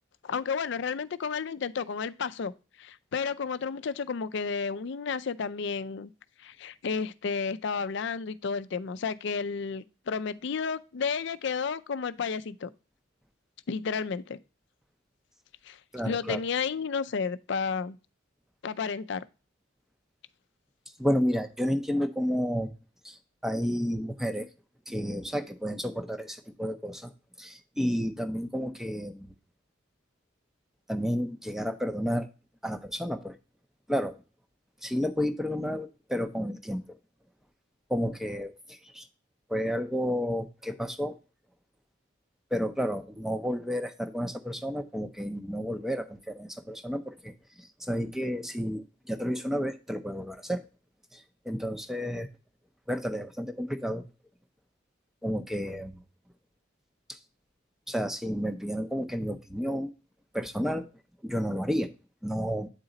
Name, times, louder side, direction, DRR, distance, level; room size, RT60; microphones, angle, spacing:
voice 1, 0.2-2.5 2.8-6.1 6.4-12.7 13.7-14.4 15.6-15.8 16.1-18.0 18.6-19.3, left 5 dB, 60° left, 0.4 m, -32 dB
voice 2, 15.9-16.4 21.0-22.7 23.0-24.5 24.9-27.1 27.4-29.3 30.9-32.3 32.6-33.3 33.9-34.1 34.8-36.8 37.9-39.0 39.5-41.1 42.5-50.6 51.1-51.2 51.5-52.3 52.9-54.0 55.2-56.0 57.1-57.2 57.9-59.9 60.3-60.8 61.2-61.9 62.2-62.7, equal, ahead, 0.5 m, -31 dB
8.9 x 4.1 x 3.8 m
head